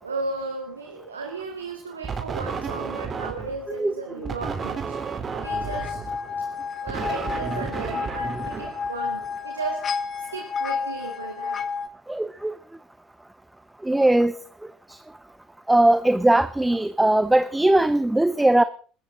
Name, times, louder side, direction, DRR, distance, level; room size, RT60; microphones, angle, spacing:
voice 1, 0.0-6.0 6.6-9.8 10.2-11.6, right 3 dB, 90° right, 2.1 m, -35 dB
sound 1, 2.0-3.7 4.3-9.4, right 5 dB, 35° right, 3.8 m, -32 dB
sound 2, 5.4-11.9, left 5 dB, 40° left, 1.8 m, -31 dB
voice 2, 12.1-12.6 13.8-14.4 14.9-15.0 15.7-18.6, right 1 dB, 10° right, 0.8 m, -20 dB
26.5 x 14.0 x 3.9 m
hypercardioid pair, 60°, 0 cm